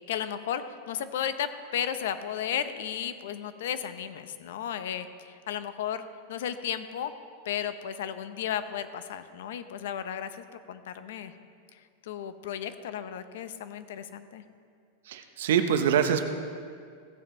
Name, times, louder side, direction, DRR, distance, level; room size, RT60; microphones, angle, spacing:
voice 1, 0.0-7.1 7.4-11.3 12.0-14.4, left 9 dB, 70° left, 11 dB, 0.8 m, -34 dB
voice 2, 15.1-16.2, right 8 dB, 70° right, 7 dB, 0.9 m, -24 dB
16.5 x 7.4 x 4.4 m, 2.2 s
supercardioid pair, 165°, 0 cm